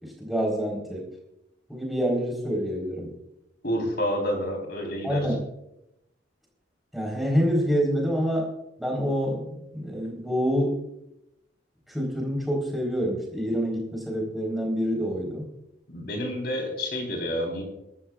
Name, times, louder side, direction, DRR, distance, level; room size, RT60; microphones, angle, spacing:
voice 1, 0.0-1.1 1.7-3.2 5.0-5.4 6.9-8.5 8.8-10.8 11.9-15.5, equal, ahead, -2 dB, 4.3 m, -27 dB
voice 2, 3.6-5.3 15.9-17.6, equal, 55° left, 2 dB, 3.9 m, -29 dB
21.5 x 13.0 x 2.5 m, 0.84 s
head